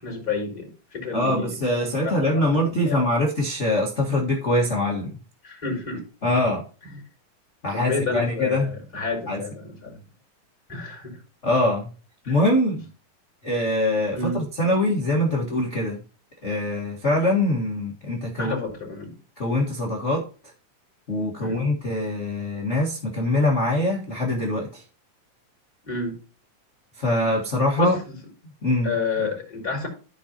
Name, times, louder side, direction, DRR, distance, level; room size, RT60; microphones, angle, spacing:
voice 1, 0.0-1.6 2.0-2.4 2.8-3.0 5.4-6.0 7.7-10.0 10.7-11.2 12.2-12.4 14.1-14.4 18.4-19.1 21.4-21.7 25.8-26.2 27.8-28.1 28.8-29.9, left 4 dB, 10° left, 4.5 m, -30 dB
voice 2, 1.1-5.2 6.2-6.6 7.6-8.7 9.3-9.4 11.4-11.9 12.3-12.8 13.4-16.0 16.4-18.5 19.4-20.3 21.1-24.8 27.0-27.9 28.6-29.3, left 1 dB, 40° left, 1.0 m, -23 dB
14.5 x 5.3 x 2.9 m
omnidirectional pair, 3.9 m